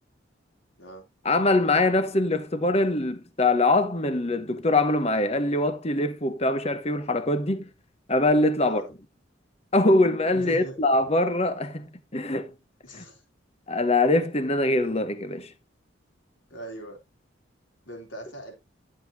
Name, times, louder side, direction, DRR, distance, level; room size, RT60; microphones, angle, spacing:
voice 1, 1.2-7.7 8.1-8.8 9.7-12.5 12.9-13.0 13.7-15.5, left 2 dB, 30° left, 1.1 m, -23 dB
voice 2, 8.6-8.9 10.3-10.8 12.8-13.2 16.5-17.0 17.9-18.5, right 1 dB, 75° left, 3.8 m, -40 dB
11.5 x 7.7 x 2.7 m
head